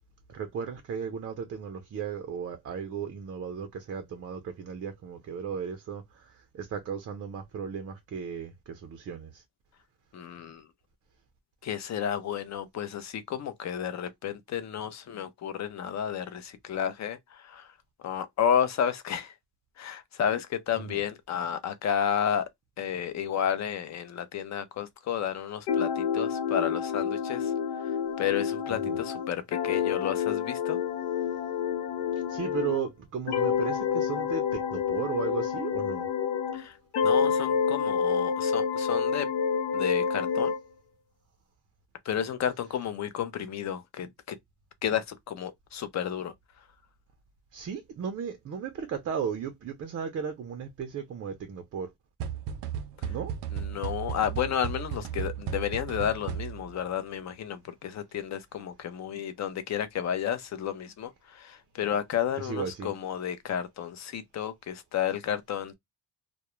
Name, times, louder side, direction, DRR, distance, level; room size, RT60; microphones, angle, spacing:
voice 1, 0.3-9.4 20.9-21.0 28.8-29.0 32.3-36.1 47.5-51.9 53.1-53.3 62.4-62.9, right 7 dB, 40° right, 0.4 m, -35 dB
voice 2, 10.1-10.7 11.6-17.7 18.0-19.3 19.8-22.5 22.8-27.5 27.8-30.8 36.5-39.3 39.7-40.5 42.0-44.4 44.8-46.3 53.0-53.1 53.5-65.7, left 9 dB, 45° left, 0.5 m, -32 dB
sound 1, 25.7-32.9 33.3-36.6 36.9-40.6, left 7 dB, 85° left, 0.6 m, -28 dB
sound 2, 52.2-56.8, right 8 dB, 85° right, 0.5 m, -35 dB
2.3 x 2.0 x 2.9 m
cardioid pair, 120°, 41 cm